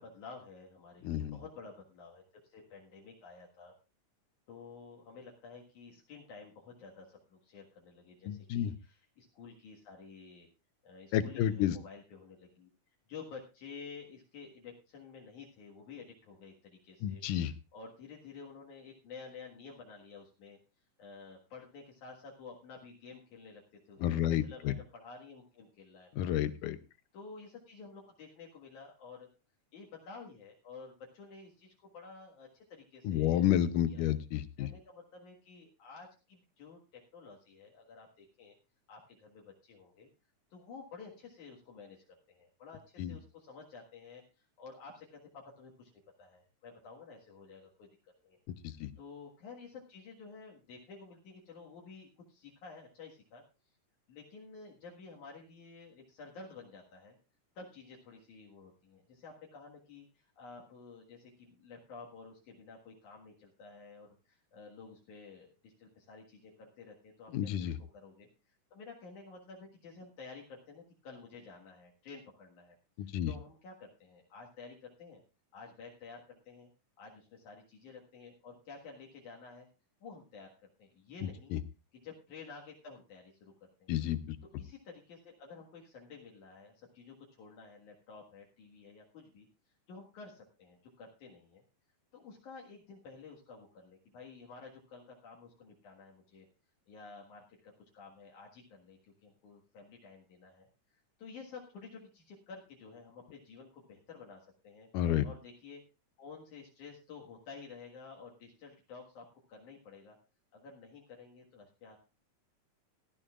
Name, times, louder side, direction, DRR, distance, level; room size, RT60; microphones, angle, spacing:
voice 1, 0.0-2.2 2.5-3.7 4.5-10.5 10.8-12.7 13.1-17.2 17.7-20.6 21.0-23.6 23.9-24.0 24.4-26.1 27.1-29.3 29.7-34.1 34.6-38.5 38.9-40.1 40.5-45.9 46.2-47.9 48.2-48.4 49.0-53.4 54.1-57.2 57.5-67.7 67.9-68.3 68.7-72.8 73.3-75.2 75.5-76.7 77.0-79.7 80.0-81.5 82.0-83.9 84.6-89.5 89.9-91.6 92.1-96.5 96.9-100.7 101.2-104.9 105.2-105.8 106.2-110.2 110.5-112.0, left 4 dB, 70° left, -2 dB, 3.1 m, -51 dB
voice 2, 1.0-1.4 8.3-8.7 11.1-11.8 17.0-17.5 24.0-24.7 26.2-26.8 33.0-34.7 43.0-43.2 48.5-48.9 67.3-67.8 73.0-73.3 81.2-81.6 83.9-84.4 104.9-105.3, left 11 dB, 90° left, 13 dB, 2.4 m, -31 dB
17.0 x 13.0 x 2.5 m, 0.29 s
omnidirectional pair, 3.6 m